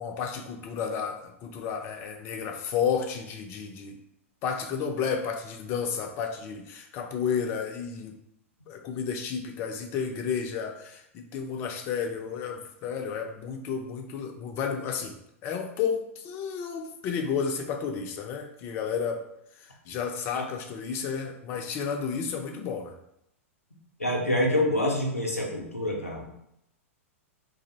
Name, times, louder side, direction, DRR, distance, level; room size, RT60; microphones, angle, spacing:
voice 1, 0.0-4.0 4.4-8.1 8.7-15.2 15.4-19.2 19.6-22.9, left 6 dB, 30° left, 4 dB, 0.4 m, -32 dB
voice 2, 24.0-26.4, left 1 dB, 90° left, -1 dB, 0.6 m, -27 dB
2.5 x 2.0 x 3.9 m, 0.77 s
figure-of-eight pair, 100°, 8 cm